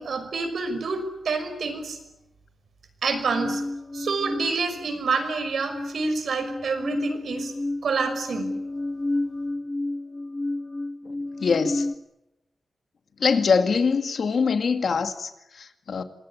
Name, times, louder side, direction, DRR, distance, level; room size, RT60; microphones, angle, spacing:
voice 1, 0.0-2.0 3.0-3.6 3.9-7.5 7.8-8.5, right 4 dB, 70° right, 8 dB, 5.8 m, -27 dB
sound 1, 3.1-5.2 5.5-12.0, left 2 dB, 15° left, 1.6 m, -31 dB
voice 2, 11.4-11.9 13.2-16.0, left 5 dB, 60° left, 8 dB, 2.2 m, -23 dB
27.5 x 20.5 x 10.0 m, 0.90 s
wide cardioid pair, 155°, 0 cm